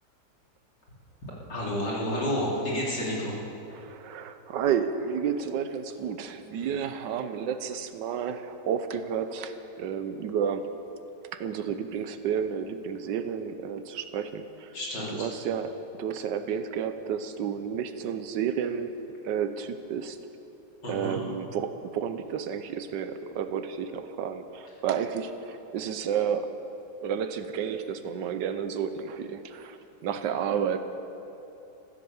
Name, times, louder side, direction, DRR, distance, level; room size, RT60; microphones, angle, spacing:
voice 1, 1.5-3.3 14.7-15.3 20.8-21.2, equal, 80° left, -5 dB, 4.1 m, -30 dB
voice 2, 3.7-9.5 9.8-10.7 11.3-14.7 15.1-19.0 19.2-20.2 20.9-26.5 27.0-30.8, right 7 dB, 85° right, 9 dB, 1.4 m, -31 dB
15.0 x 13.0 x 7.1 m, 3.0 s
omnidirectional pair, 1.9 m